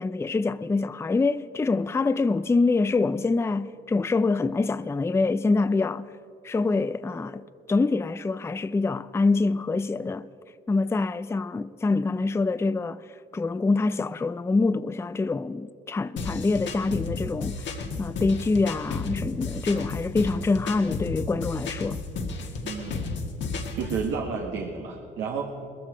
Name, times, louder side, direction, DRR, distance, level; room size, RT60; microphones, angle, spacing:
voice 1, 0.0-6.1 6.4-10.3 10.7-13.1 13.3-17.7 18.0-22.0, left 3 dB, 15° left, 0.4 m, -25 dB
sound 1, 16.2-24.1, left 4 dB, 65° left, 1.8 m, -33 dB
voice 2, 22.6-23.2 23.7-25.4, right 5 dB, 85° right, 1.5 m, -31 dB
20.0 x 14.5 x 5.0 m
cardioid pair, 90°, 20 cm